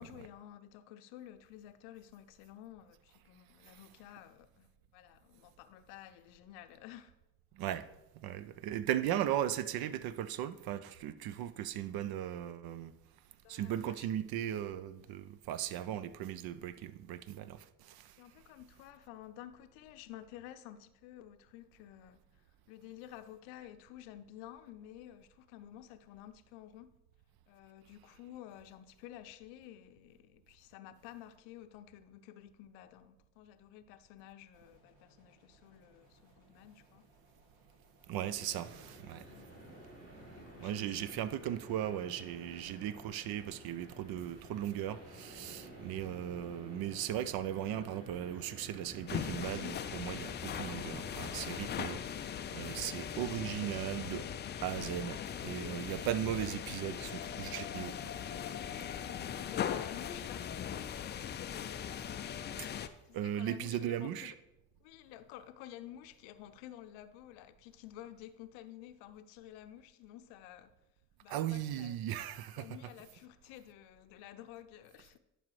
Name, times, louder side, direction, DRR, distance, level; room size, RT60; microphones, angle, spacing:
voice 1, 0.0-7.1 13.4-14.1 15.9-16.0 18.2-26.9 27.5-37.1 38.2-38.6 39.3-39.5 40.2-41.0 45.8-46.0 52.8-53.7 58.9-60.5 63.1-64.4 64.8-70.7 71.2-72.0 72.6-75.2, left 12 dB, 65° left, 0.6 m, -52 dB
voice 2, 7.5-7.8 8.2-12.9 13.5-18.2 38.1-39.3 40.6-54.3 54.6-57.9 62.5-62.7 63.1-64.3 71.3-72.7, right 11 dB, 50° right, 0.5 m, -37 dB
sound 1, 34.5-44.8, right 1 dB, 70° right, 2.6 m, -67 dB
sound 2, 38.2-51.9, right 1 dB, 30° right, 3.1 m, -52 dB
sound 3, 49.1-62.9, left 8 dB, 25° left, 0.3 m, -40 dB
11.0 x 5.3 x 3.1 m
hypercardioid pair, 50°, 50 cm